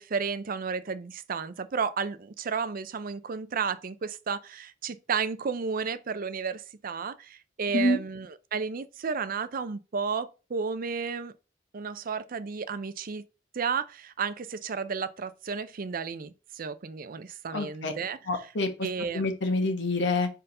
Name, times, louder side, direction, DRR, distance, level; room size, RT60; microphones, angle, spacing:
voice 1, 0.0-11.3 11.7-13.2 13.5-18.2 18.8-19.2, right 5 dB, 50° right, 0.5 m, -32 dB
voice 2, 17.5-17.9 18.3-18.9 19.1-20.3, left 2 dB, 65° left, 1.4 m, -27 dB
5.0 x 4.5 x 5.4 m
head